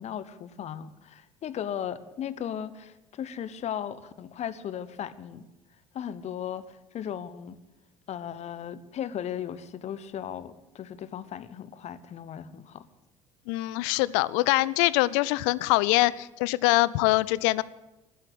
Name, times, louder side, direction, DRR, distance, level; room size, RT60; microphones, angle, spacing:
voice 1, 0.0-5.5 5.9-7.6 8.1-12.8, left 9 dB, 45° left, 16 dB, 1.0 m, -36 dB
voice 2, 13.5-17.6, left 19 dB, 65° left, 21 dB, 0.5 m, -24 dB
13.0 x 9.9 x 9.8 m, 1.0 s
figure-of-eight pair, 60°, 16 cm